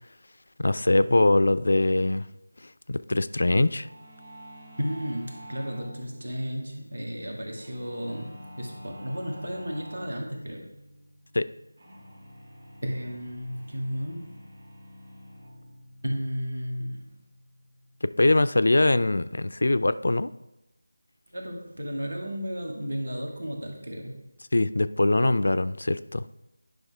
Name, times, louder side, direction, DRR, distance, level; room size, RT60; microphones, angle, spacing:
voice 1, 0.6-2.3 2.9-3.9 11.3-11.4 18.0-20.3 24.5-26.2, left 2 dB, 60° left, 14 dB, 0.3 m, -22 dB
sound 1, 3.8-18.3, equal, 55° right, 2.2 m, -48 dB
voice 2, 4.8-10.6 12.8-14.3 16.0-17.1 21.3-24.2, equal, 70° right, 1 dB, 2.1 m, -33 dB
10.5 x 5.4 x 3.5 m, 0.94 s
figure-of-eight pair, 165°, 0 cm